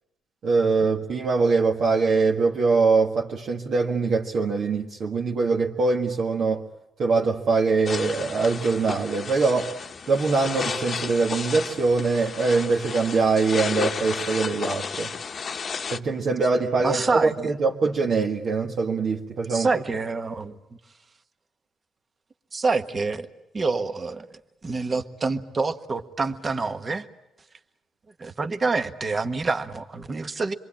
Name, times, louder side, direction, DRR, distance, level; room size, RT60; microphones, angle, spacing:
voice 1, 0.4-6.6 7.0-9.7 10.1-15.1 15.9-19.8, right 4 dB, 60° right, 1.7 m, -23 dB
sound 1, 7.8-16.0, left 5 dB, 45° left, 1.0 m, -33 dB
voice 2, 16.8-17.5 19.5-20.6 22.5-23.3 23.5-24.3 24.6-27.1 28.2-30.5, right 3 dB, 35° right, 1.4 m, -27 dB
27.0 x 22.5 x 8.8 m
cardioid pair, 90°, 0 cm